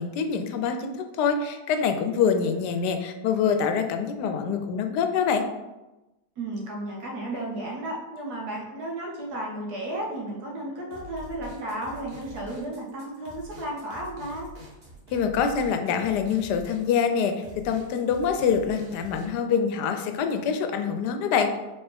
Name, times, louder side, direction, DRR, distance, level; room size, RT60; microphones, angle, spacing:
voice 1, 0.0-5.4 15.1-21.6, left 6 dB, 90° left, 6 dB, 1.2 m, -25 dB
voice 2, 6.4-14.5, right 1 dB, 70° right, -2 dB, 1.6 m, -33 dB
sound 1, 10.9-19.3, right 1 dB, 40° right, 1.3 m, -45 dB
4.4 x 3.5 x 3.4 m, 1.0 s
omnidirectional pair, 1.7 m